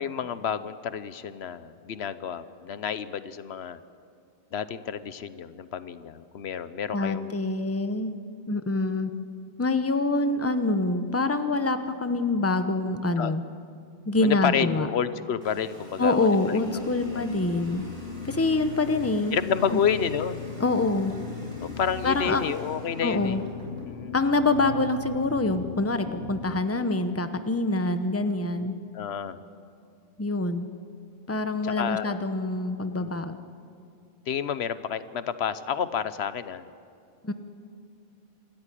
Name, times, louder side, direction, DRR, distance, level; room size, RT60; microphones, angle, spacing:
voice 1, 0.0-3.8 4.5-7.3 13.2-13.3 14.2-16.6 17.1-17.3 18.3-18.4 19.3-20.4 21.6-23.4 23.9-24.1 28.9-29.4 31.6-32.2 32.9-33.2 34.3-36.7, left 7 dB, 85° left, 14 dB, 1.1 m, -30 dB
voice 2, 6.9-8.1 8.5-9.1 9.6-13.4 14.1-14.9 16.0-17.8 18.2-19.4 19.7-19.8 20.6-21.1 22.0-22.5 23.0-23.4 24.1-28.7 30.2-30.7 31.3-33.4 37.2-37.3, left 2 dB, 15° left, 9 dB, 0.9 m, -25 dB
Water tap faucet, 15.4-23.9, right 1 dB, 55° right, 4.7 m, -49 dB
sound 1, 16.6-26.6, left 6 dB, 60° left, 1.1 m, -39 dB
26.0 x 13.5 x 10.0 m, 2.4 s
omnidirectional pair, 1.0 m